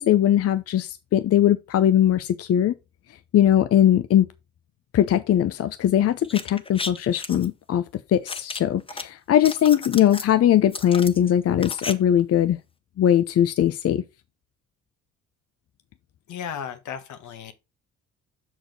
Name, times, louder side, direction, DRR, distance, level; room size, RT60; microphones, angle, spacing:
voice 1, 0.0-2.7 3.3-4.3 4.9-7.8 8.1-12.6 13.0-14.0, left 11 dB, 50° left, 0.6 m, -20 dB
sound 1, 6.2-7.5 8.3-9.0 9.3-10.3 10.7-11.9 12.2-12.3, left 3 dB, 20° left, 0.9 m, -34 dB
voice 2, 16.3-17.5, left 8 dB, 75° left, 1.3 m, -35 dB
6.1 x 4.7 x 5.2 m
cardioid pair, 90°, 30 cm